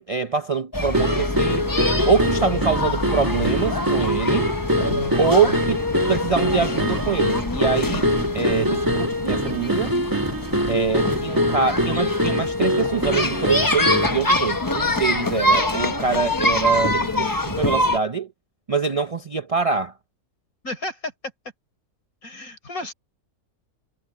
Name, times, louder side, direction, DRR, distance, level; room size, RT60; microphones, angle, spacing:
voice 1, 0.0-1.7 2.1-4.5 5.2-5.8 6.1-8.1 8.3-9.9 10.7-18.3 18.7-19.9, right 5 dB, 40° right, 0.5 m, -24 dB
sound 1, 0.7-18.0, left 1 dB, 15° left, 1.0 m, -25 dB
sound 2, 0.9-14.3, equal, 15° right, 1.4 m, -24 dB
voice 2, 4.8-5.6 20.6-21.1 22.2-22.9, left 2 dB, 70° left, 4.7 m, -33 dB
omnidirectional pair, 1.6 m